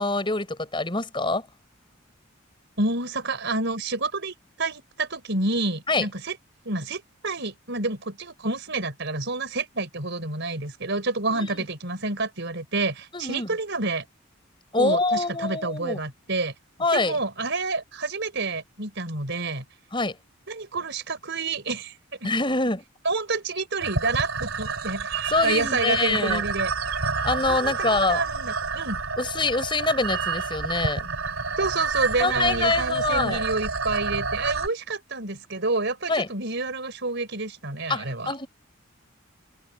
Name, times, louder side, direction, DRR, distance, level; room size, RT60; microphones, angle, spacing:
voice 1, 0.0-1.4 5.9-6.1 11.3-11.6 13.1-13.5 14.7-16.0 16.8-17.2 19.9-20.2 22.2-22.8 25.3-26.4 27.2-28.2 29.2-31.1 32.2-33.4 36.1-36.3 37.9-38.5, left 3 dB, 25° left, 5.6 m, -25 dB
voice 2, 2.8-6.4 6.6-14.0 14.8-16.5 16.9-19.6 20.5-22.0 23.0-27.0 27.5-29.0 31.6-38.3, right 3 dB, 60° right, 5.0 m, -29 dB
sound 1, 23.8-34.7, right 4 dB, 85° right, 2.7 m, -29 dB
head